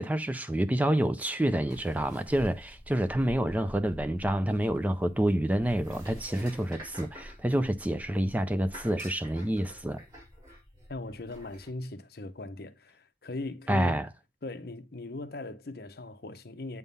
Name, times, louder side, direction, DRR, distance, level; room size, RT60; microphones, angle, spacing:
voice 1, 0.0-10.0 13.7-14.1, right 1 dB, 10° right, 0.4 m, -28 dB
sound 1, 1.7-11.7, equal, 25° right, 5.1 m, -48 dB
voice 2, 10.9-14.0 14.4-16.8, left 2 dB, 60° left, 0.8 m, -39 dB
8.2 x 3.7 x 5.3 m
head